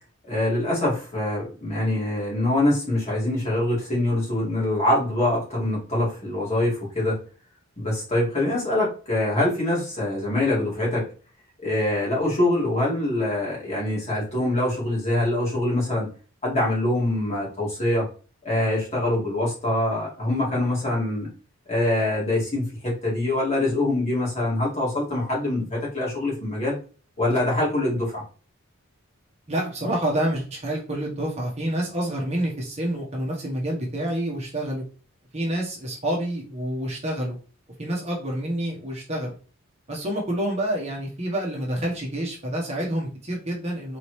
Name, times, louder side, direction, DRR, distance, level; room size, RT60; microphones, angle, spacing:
voice 1, 0.3-7.2 7.8-11.1 11.6-16.1 16.4-18.1 18.4-21.3 21.7-26.8 27.2-28.2, left 1 dB, 30° left, -5 dB, 2.3 m, -24 dB
voice 2, 29.5-34.8 35.3-37.4 37.8-39.3 39.9-44.0, right 1 dB, 30° right, -3 dB, 1.2 m, -28 dB
4.1 x 3.8 x 3.2 m, 0.37 s
head